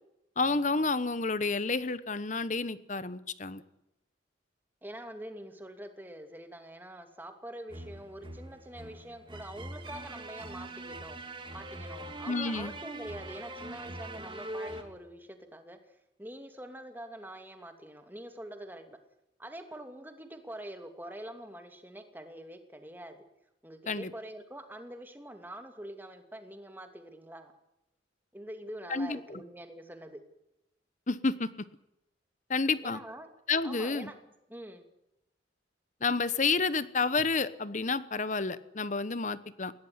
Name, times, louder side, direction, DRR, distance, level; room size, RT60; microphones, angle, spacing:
voice 1, 0.4-3.6 12.3-12.7 23.9-24.1 28.9-29.4 31.1-31.5 32.5-33.0 33.5-34.1 36.0-39.7, left 4 dB, 40° left, 15 dB, 1.1 m, -30 dB
voice 2, 4.8-11.2 11.5-19.0 19.4-23.2 23.6-27.5 28.3-30.2 32.8-33.3 33.6-34.2 34.5-34.8, right 1 dB, 10° right, 6 dB, 2.7 m, -45 dB
sound 1, 7.7-14.8, right 1 dB, 25° right, 2.5 m, -42 dB
20.5 x 17.5 x 9.7 m, 0.87 s
head